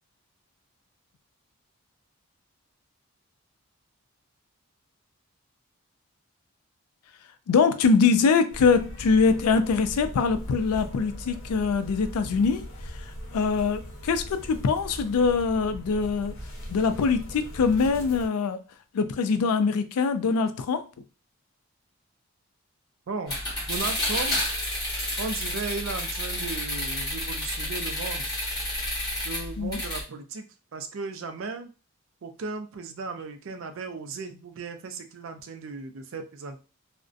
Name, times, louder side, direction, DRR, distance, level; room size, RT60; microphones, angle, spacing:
voice 1, 7.5-16.4 16.7-18.6 18.9-20.8 29.6-29.8, left 5 dB, 90° left, 0.4 m, -23 dB
sound 1, 8.5-18.3, equal, 60° left, 0.7 m, -40 dB
voice 2, 23.1-23.4 23.7-24.4 25.2-28.4 29.2-30.5 30.7-31.7 32.2-36.6, right 4 dB, 60° right, 0.4 m, -36 dB
sound 2, 23.3-30.0, left 1 dB, 20° left, 1.0 m, -30 dB
2.5 x 2.1 x 2.4 m
head